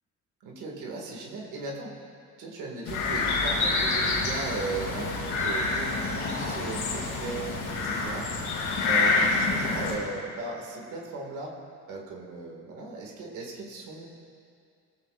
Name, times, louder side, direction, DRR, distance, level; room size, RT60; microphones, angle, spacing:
voice 1, 0.4-1.9 2.4-11.5 11.9-14.1, right 3 dB, 90° right, -1 dB, 2.2 m, -37 dB
sound 1, 2.9-10.0, left 3 dB, 80° left, 3.6 m, -27 dB
18.0 x 15.0 x 2.5 m, 2.3 s
cardioid pair, 90°, 30 cm